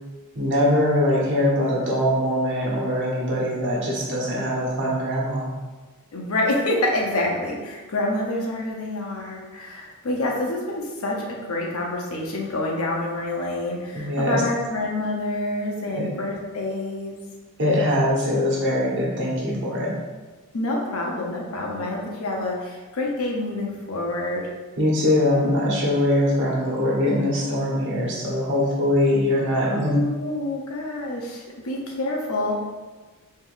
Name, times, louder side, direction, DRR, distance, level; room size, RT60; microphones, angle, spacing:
voice 1, 0.3-5.5 13.9-14.4 15.9-16.1 17.6-19.9 24.8-29.9, left 1 dB, 55° right, -4 dB, 1.2 m, -22 dB
voice 2, 6.1-17.2 20.5-24.5 25.3-25.4 29.7-32.5, left 2 dB, 70° left, -1 dB, 0.8 m, -27 dB
4.2 x 3.7 x 2.5 m, 1.3 s
head